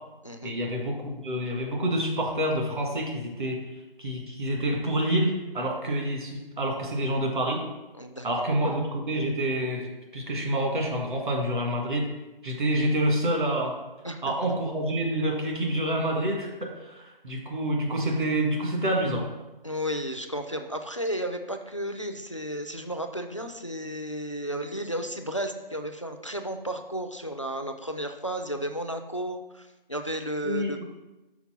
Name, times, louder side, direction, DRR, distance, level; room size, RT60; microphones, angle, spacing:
voice 1, 0.4-7.6 8.2-9.9 10.1-12.1 12.4-13.7 14.2-16.5 16.8-19.3 30.4-30.8, right 1 dB, 55° right, 0 dB, 1.8 m, -27 dB
voice 2, 8.0-8.5 14.0-14.3 19.6-30.8, equal, 35° left, 7 dB, 0.4 m, -33 dB
5.8 x 4.2 x 5.7 m, 1.1 s
figure-of-eight pair, 165°, 29 cm